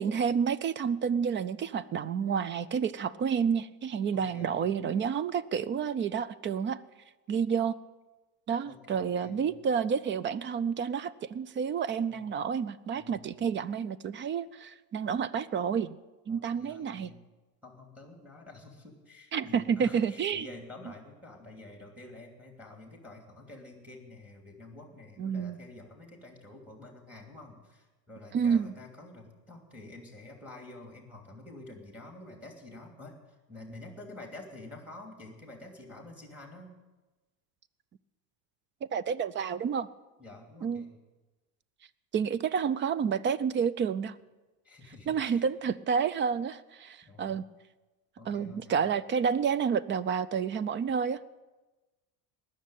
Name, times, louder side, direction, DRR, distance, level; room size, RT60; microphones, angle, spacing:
voice 1, 0.0-6.8 7.3-7.8 8.5-16.0 16.3-17.1 19.3-20.5 25.2-25.6 28.3-28.7 38.8-39.9 40.6-40.9 42.1-44.2 45.1-47.4 48.3-51.2, right 7 dB, 25° right, 18 dB, 0.4 m, -29 dB
voice 2, 4.1-4.7 8.6-9.6 12.1-12.2 12.9-13.2 16.3-17.2 17.6-33.2 33.5-36.7 40.2-40.9 44.6-45.4 47.1-47.4 48.2-48.8, left 2 dB, 5° right, 2 dB, 2.8 m, -49 dB
19.5 x 6.6 x 9.0 m, 1.2 s
supercardioid pair, 105°, 46 cm